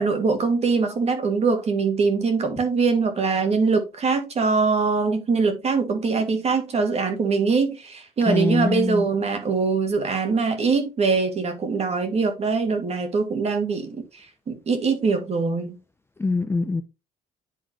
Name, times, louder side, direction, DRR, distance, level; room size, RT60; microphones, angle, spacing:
voice 1, 0.0-15.8, right 4 dB, 40° right, 1.9 m, -23 dB
voice 2, 8.3-9.1 16.2-16.8, left 3 dB, 15° left, 0.6 m, -23 dB
10.5 x 3.8 x 2.9 m
cardioid pair, 110°, 17 cm